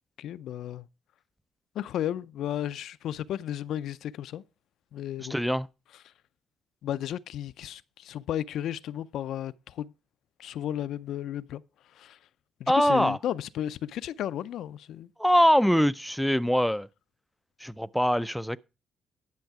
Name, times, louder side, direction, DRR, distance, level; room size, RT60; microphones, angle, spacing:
voice 1, 0.2-0.9 1.8-4.4 4.9-5.4 6.8-9.9 10.4-11.6 12.0-12.2 12.6-15.1, left 11 dB, 75° left, 0.5 m, -33 dB
voice 2, 5.2-5.7 12.7-13.2 15.2-16.9 17.6-18.6, equal, ahead, 0.4 m, -23 dB
10.5 x 6.5 x 4.7 m
cardioid pair, 90°, 0 cm